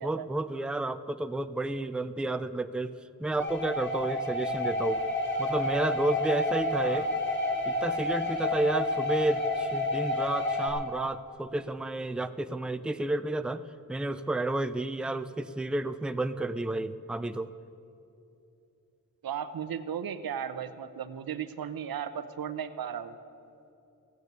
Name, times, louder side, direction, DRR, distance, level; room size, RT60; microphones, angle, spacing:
voice 1, 0.0-2.9 3.2-5.0 5.4-7.1 7.7-13.6 13.9-17.5, right 2 dB, 5° right, 11 dB, 0.4 m, -31 dB
sound 1, 3.4-10.7, left 2 dB, 35° left, 2.9 m, -30 dB
voice 2, 6.8-7.1 19.2-23.2, right 8 dB, 90° right, 11 dB, 0.8 m, -36 dB
15.0 x 9.4 x 8.2 m, 2.7 s
wide cardioid pair, 80°, 34 cm